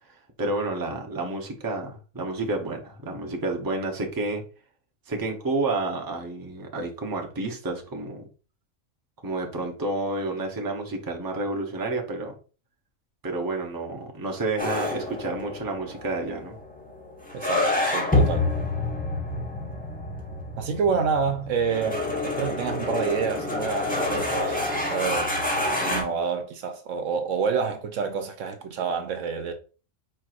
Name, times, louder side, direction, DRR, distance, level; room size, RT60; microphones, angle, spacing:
voice 1, 0.1-4.4 5.1-8.2 9.2-12.3 13.2-16.6, right 2 dB, 20° right, 0.7 m, -30 dB
sound 1, 14.6-26.0, left 2 dB, 5° left, 0.9 m, -28 dB
voice 2, 17.3-18.5 20.6-25.3 25.9-29.5, right 5 dB, 70° right, 1.0 m, -28 dB
4.6 x 4.5 x 2.4 m
omnidirectional pair, 1.4 m